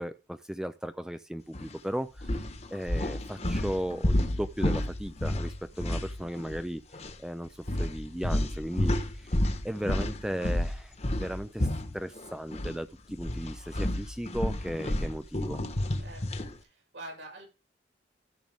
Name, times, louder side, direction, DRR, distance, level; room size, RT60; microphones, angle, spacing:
voice 1, 0.0-6.8 7.2-9.4 9.6-11.7 11.9-15.6, equal, 5° right, 0.4 m, -36 dB
sound 1, 1.5-1.7 2.2-6.7 6.9-7.1 7.7-12.8 13.1-16.5, left 1 dB, 35° left, 1.2 m, -31 dB
voice 2, 16.0-17.5, right 1 dB, 90° right, 6.7 m, -46 dB
13.0 x 7.5 x 3.6 m
head